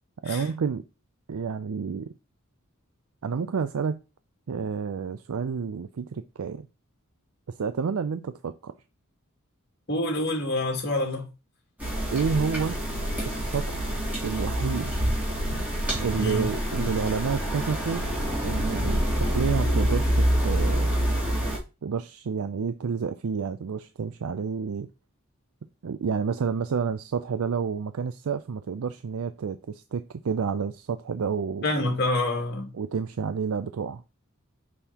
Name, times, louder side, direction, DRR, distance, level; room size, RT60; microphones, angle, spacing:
voice 1, 0.2-0.8 1.3-2.1 3.2-4.0 4.5-6.7 7.6-8.7 12.1-12.8 13.2-14.9 16.0-18.1 18.4-20.9 21.8-24.9 25.8-31.7 32.7-34.0, right 5 dB, 85° right, 0.4 m, -29 dB
voice 2, 9.9-11.3 16.2-16.5 31.6-32.7, left 1 dB, 50° left, 2.2 m, -27 dB
sound 1, 11.8-21.6, equal, 5° right, 2.9 m, -26 dB
6.3 x 5.6 x 2.9 m
head